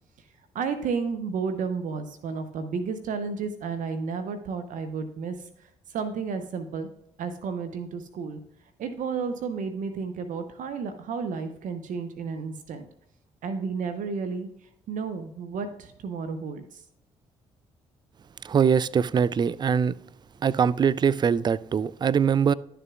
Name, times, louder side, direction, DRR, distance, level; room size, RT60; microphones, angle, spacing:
voice 1, 0.5-5.4 5.9-6.9 7.2-8.4 8.8-12.8 13.4-14.5 14.9-16.8, right 5 dB, 60° right, 0.7 m, -32 dB
voice 2, 18.4-19.9 20.4-22.5, right 7 dB, 30° right, 0.3 m, -22 dB
11.5 x 6.8 x 2.4 m
hypercardioid pair, 50°, 15 cm